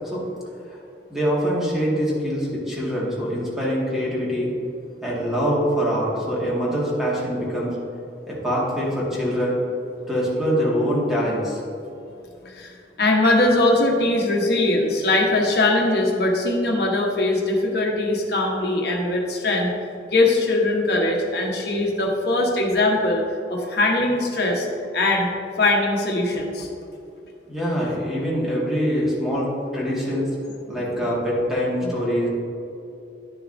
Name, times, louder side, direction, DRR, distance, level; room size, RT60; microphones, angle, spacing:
voice 1, 1.1-4.5 5.0-7.8 8.3-9.6 10.1-11.6 27.5-30.3 30.7-32.3, equal, ahead, -7 dB, 1.8 m, -24 dB
voice 2, 12.4-19.7 20.1-23.2 23.5-24.7 24.9-25.3 25.6-26.7 31.8-31.9, left 2 dB, 60° left, 0 dB, 1.2 m, -21 dB
11.0 x 6.8 x 2.6 m, 2.7 s
head